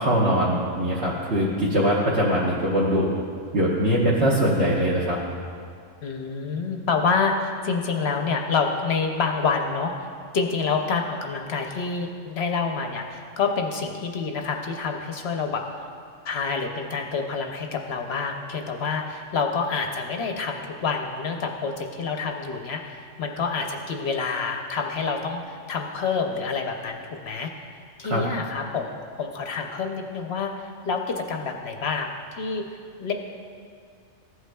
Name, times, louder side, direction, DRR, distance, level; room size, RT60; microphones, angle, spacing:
voice 1, 0.0-3.1 3.5-5.2 28.0-28.2, equal, 55° right, -6 dB, 1.2 m, -22 dB
voice 2, 6.0-15.9 16.2-27.5 28.0-32.6 33.0-33.1, left 5 dB, 60° left, 3 dB, 0.8 m, -27 dB
14.5 x 8.0 x 2.2 m, 2.3 s
omnidirectional pair, 1.5 m